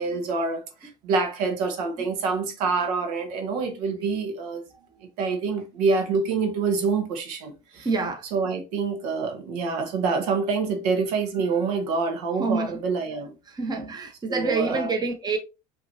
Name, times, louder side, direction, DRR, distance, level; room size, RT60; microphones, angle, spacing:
voice 1, 0.0-4.6 5.2-7.9 8.3-13.3 14.3-14.9, right 4 dB, 75° right, 1.3 m, -26 dB
voice 2, 7.8-8.2 12.4-12.8 13.5-15.4, right 4 dB, 20° right, 1.0 m, -27 dB
5.7 x 3.0 x 2.7 m
supercardioid pair, 95°, 20 cm